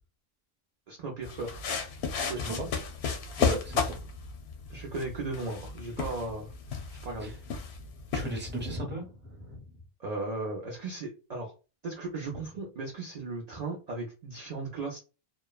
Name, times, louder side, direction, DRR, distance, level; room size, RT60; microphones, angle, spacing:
voice 1, 0.9-1.6 2.3-2.6 4.7-6.5 7.0-7.3 10.0-11.5 11.8-15.0, right 3 dB, 50° right, 0 dB, 0.5 m, -36 dB
sound 1, 1.2-8.7, left 5 dB, 90° left, 0.9 m, -34 dB
voice 2, 3.4-4.0 7.2-7.4 8.1-9.7, right 1 dB, 10° right, 0 dB, 0.8 m, -36 dB
3.0 x 2.1 x 2.3 m, 0.32 s
omnidirectional pair, 1.0 m